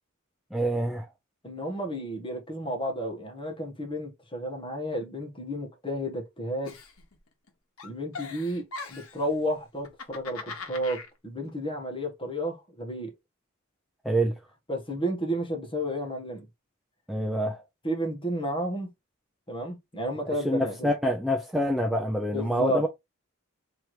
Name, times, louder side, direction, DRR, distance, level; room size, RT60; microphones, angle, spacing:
voice 1, 0.5-1.1 14.0-14.4 17.1-17.6 20.3-22.9, equal, ahead, 0.6 m, -26 dB
voice 2, 1.4-6.8 7.8-13.1 14.7-16.5 17.8-18.9 19.5-20.9 22.3-22.9, equal, 25° left, 1.6 m, -32 dB
Giggle, 6.6-7.5 7.8-9.2 9.8-11.1, left 4 dB, 80° left, 1.2 m, -40 dB
3.5 x 3.1 x 4.5 m
head